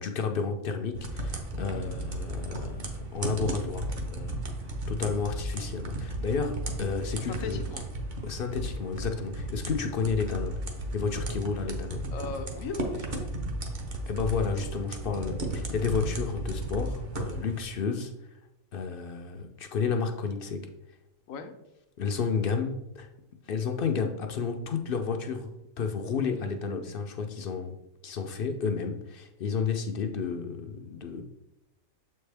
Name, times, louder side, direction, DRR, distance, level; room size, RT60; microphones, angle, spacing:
voice 1, 0.0-4.4 4.9-7.6 8.2-10.6 10.9-12.0 14.1-18.4 18.7-20.7 22.0-23.1 23.4-27.8 28.0-31.2, left 5 dB, 60° left, 5 dB, 0.6 m, -31 dB
sound 1, 0.9-17.6, right 1 dB, 40° right, 0.9 m, -35 dB
voice 2, 7.4-7.8 12.1-13.3 21.3-21.5, left 5 dB, 85° left, 7 dB, 1.1 m, -37 dB
7.1 x 4.4 x 3.3 m, 0.91 s
omnidirectional pair, 1.4 m